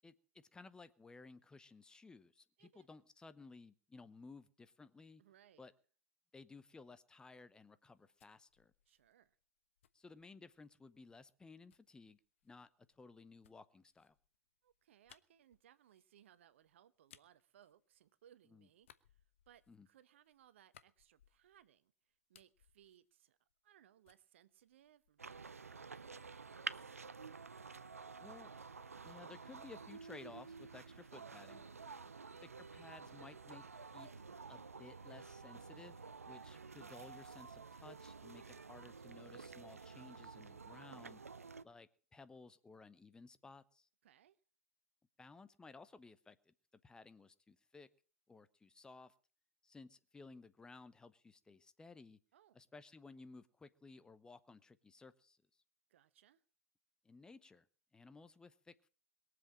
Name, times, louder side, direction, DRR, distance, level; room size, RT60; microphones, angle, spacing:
voice 1, 0.0-5.2 5.6-5.7 6.3-8.7 9.9-12.2 12.4-12.7 13.0-14.1 18.5-18.7 19.7-19.9 28.2-28.5 29.0-31.7 32.4-34.1 34.5-41.2 41.6-43.9 45.2-46.5 46.8-47.9 48.3-49.1 49.6-52.2 52.5-55.4 57.0-57.7 57.9-58.9, left 3 dB, 10° left, 0.9 m, -57 dB
voice 2, 5.2-5.7 8.9-9.4 14.6-23.4 23.6-27.0 30.7-31.0 31.7-32.2 44.0-44.4 52.3-52.6 55.9-56.4, right 10 dB, 55° right, 1.1 m, -67 dB
sound 1, 7.8-10.8 11.7-18.4 18.8-21.8 22.1-23.8 24.0-25.4, left 10 dB, 55° left, 1.1 m, -70 dB
sound 2, 25.2-41.6, right 5 dB, 75° right, 0.7 m, -51 dB
22.0 x 7.8 x 7.4 m
figure-of-eight pair, 100°, 8 cm